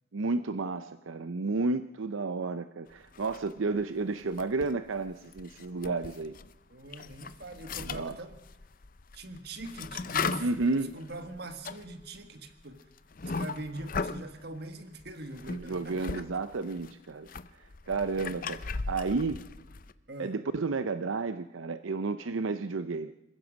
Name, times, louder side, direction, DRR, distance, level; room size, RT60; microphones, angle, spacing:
voice 1, 0.1-6.4 7.9-8.1 10.4-10.9 15.5-17.3 17.6-19.4 20.2-23.1, right 3 dB, 80° right, 11 dB, 0.6 m, -32 dB
sound 1, 3.1-3.8 4.2-6.5 6.8-14.3 15.0-16.2 16.5-19.9, left 4 dB, 45° left, 0.6 m, -38 dB
voice 2, 6.7-8.4 9.1-10.5 10.8-12.8 13.2-16.3 20.1-20.4, right 2 dB, 55° right, 8 dB, 1.8 m, -42 dB
26.5 x 15.5 x 6.3 m, 1.0 s
head